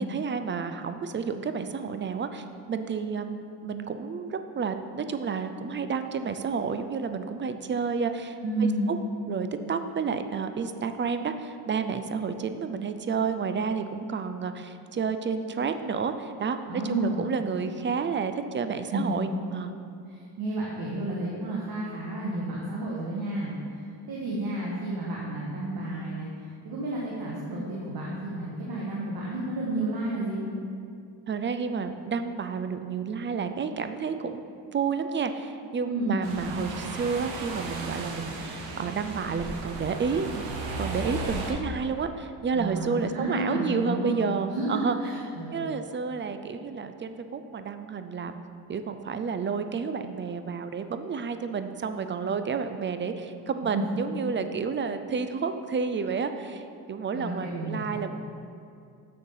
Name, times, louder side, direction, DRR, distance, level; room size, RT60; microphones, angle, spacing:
voice 1, 0.0-9.0 9.3-16.6 16.9-19.7 31.3-34.5 34.7-40.5 40.8-45.0 45.5-48.4 48.7-58.1, right 5 dB, 25° right, 9 dB, 0.4 m, -30 dB
voice 2, 8.4-8.9 16.7-17.3 18.9-19.2 20.1-30.4 35.8-36.3 42.5-44.1 44.5-45.7 53.7-53.8 57.1-58.1, right 1 dB, 55° right, -5 dB, 1.5 m, -31 dB
sound 1, 36.2-41.5, right 2 dB, 80° right, 1.3 m, -35 dB
6.6 x 6.5 x 5.5 m, 2.4 s
cardioid pair, 95°, 43 cm